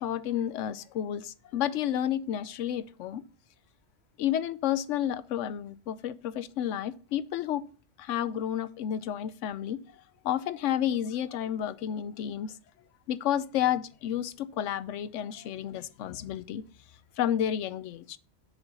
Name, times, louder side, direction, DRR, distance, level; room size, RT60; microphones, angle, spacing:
voice 1, 0.0-3.2 4.2-7.6 8.0-9.8 10.2-12.5 13.1-16.6 17.2-18.2, left 10 dB, 80° left, 0.9 m, -31 dB
7.0 x 5.1 x 5.3 m
omnidirectional pair, 1.2 m